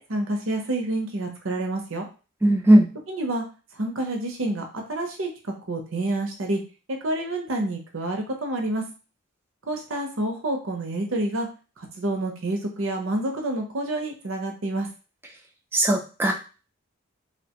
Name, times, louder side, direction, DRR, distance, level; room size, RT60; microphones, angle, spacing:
voice 1, 0.0-2.1 3.1-3.4 3.8-5.3 5.7-6.6 7.0-8.8 9.7-11.5 11.8-14.9, right 2 dB, 65° right, 2 dB, 0.7 m, -28 dB
voice 2, 2.4-2.9 15.7-16.3, right 1 dB, 10° right, 1 dB, 0.4 m, -17 dB
2.8 x 2.1 x 2.8 m, 0.34 s
head